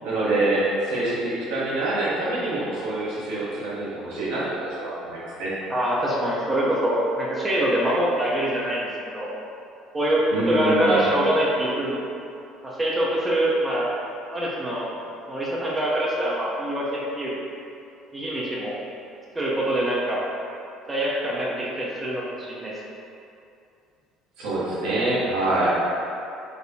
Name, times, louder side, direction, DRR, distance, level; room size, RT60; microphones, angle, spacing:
voice 1, 0.0-5.5 10.3-11.0 24.4-25.8, right 2 dB, 70° right, -8 dB, 1.0 m, -25 dB
voice 2, 5.7-9.3 9.9-12.0 12.6-14.0 14.3-14.9 15.3-17.3 18.1-18.8 19.3-20.2 20.9-22.7, right 1 dB, 20° right, -6 dB, 0.8 m, -24 dB
4.3 x 2.5 x 2.8 m, 2.6 s
hypercardioid pair, 60°, 0 cm